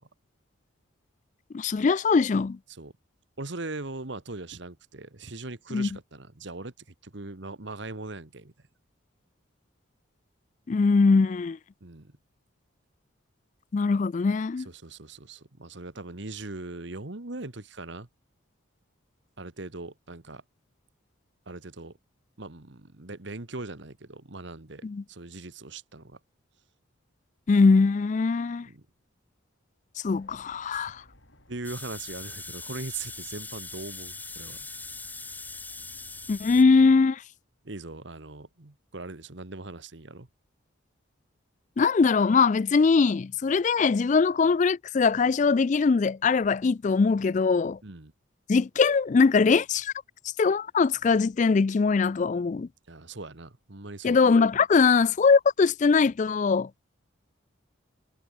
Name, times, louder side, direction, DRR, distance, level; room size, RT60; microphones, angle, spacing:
voice 1, 1.5-2.6 5.7-5.9 10.7-11.6 13.7-14.7 24.8-25.0 27.5-28.7 30.0-31.0 36.3-37.2 41.8-47.8 48.5-49.9 50.4-52.7 54.0-56.7, left 4 dB, 35° left, 0.3 m, -22 dB
voice 2, 3.4-6.7 7.0-8.5 11.8-12.1 14.6-18.1 19.4-20.4 21.5-22.0 22.4-26.2 28.7-28.8 30.7-30.9 31.5-34.6 37.6-40.3 47.8-48.1 52.9-54.2, right 3 dB, 60° right, 1.5 m, -40 dB
sound 1, 30.0-37.1, left 1 dB, 65° left, 7.2 m, -57 dB
sound 2, 31.6-36.6, left 3 dB, 10° left, 1.9 m, -41 dB
head